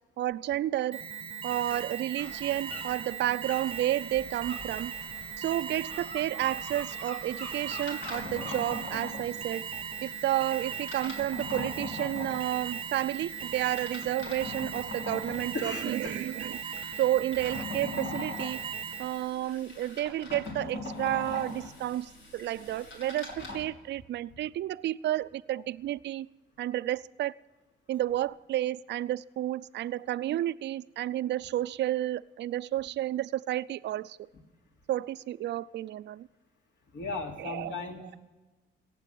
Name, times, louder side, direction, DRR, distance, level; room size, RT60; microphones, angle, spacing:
voice 1, 0.2-1.0 1.4-4.9 5.4-9.7 10.0-16.6 17.0-18.6 19.0-26.3 26.6-27.3 27.9-34.2 34.9-36.3 37.4-37.7, right 13 dB, 60° right, 16 dB, 0.4 m, -31 dB
Alarm, 0.9-19.3, right 7 dB, 30° right, 0.7 m, -39 dB
sound 1, 2.2-9.0, left 2 dB, 35° left, 3.7 m, -47 dB
sound 2, 7.2-23.6, left 2 dB, 85° left, 3.5 m, -42 dB
voice 2, 15.3-16.2 36.9-38.2, left 3 dB, 65° left, 1 dB, 3.0 m, -37 dB
17.5 x 7.7 x 9.0 m, 1.2 s
cardioid pair, 90°, 20 cm